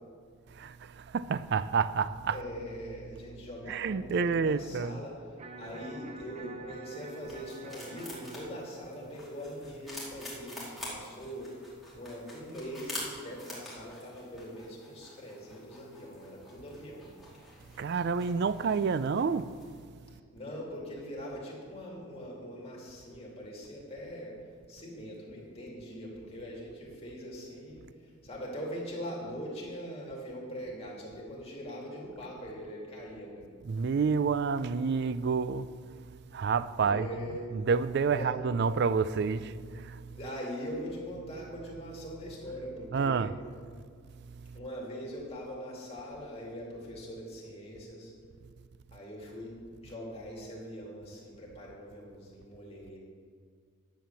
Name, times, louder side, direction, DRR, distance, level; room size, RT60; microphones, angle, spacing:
voice 1, 1.1-2.4 3.7-5.0 17.8-19.5 33.6-35.7 36.3-37.1 37.5-39.5 39.8-40.0 42.9-43.3, right 5 dB, 50° right, 0.4 m, -28 dB
voice 2, 2.3-5.2 5.6-11.5 11.9-17.1 20.3-24.3 24.7-33.5 36.8-37.4 38.1-38.3 40.1-43.3 44.5-48.1 48.9-49.5 49.8-53.0, equal, 30° left, 2.5 m, -42 dB
Electric guitar, 5.4-11.4, right 3 dB, 30° right, 0.9 m, -48 dB
sound 1, 6.9-19.8, left 1 dB, ahead, 2.4 m, -47 dB
10.0 x 7.8 x 6.9 m
head